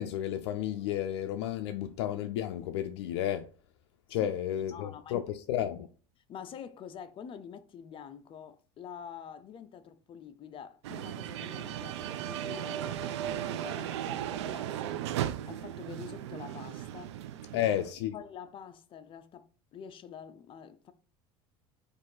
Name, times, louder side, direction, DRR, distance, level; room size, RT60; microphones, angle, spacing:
voice 1, 0.0-3.5 4.1-5.9 17.5-18.1, left 11 dB, 80° left, 0.4 m, -32 dB
voice 2, 4.2-5.3 6.3-17.2 17.5-17.6 18.1-20.9, left 7 dB, 40° left, 0.6 m, -47 dB
sound 1, 10.8-17.9, right 11 dB, 85° right, 0.4 m, -36 dB
4.3 x 2.6 x 4.7 m
supercardioid pair, 95°, 14 cm